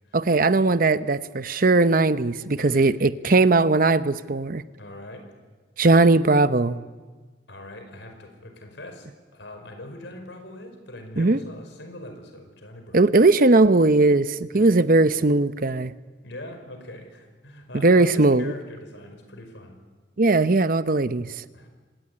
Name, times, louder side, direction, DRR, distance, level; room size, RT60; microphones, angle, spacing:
voice 1, 0.1-4.6 5.8-6.8 11.2-11.4 12.9-15.9 17.7-18.5 20.2-21.3, right 3 dB, 50° right, 13 dB, 0.8 m, -19 dB
voice 2, 2.6-2.9 4.8-5.2 7.5-13.0 14.5-14.8 16.2-19.8 21.5-21.7, left 1 dB, 75° left, 6 dB, 5.3 m, -42 dB
25.5 x 19.0 x 9.9 m, 1.4 s
head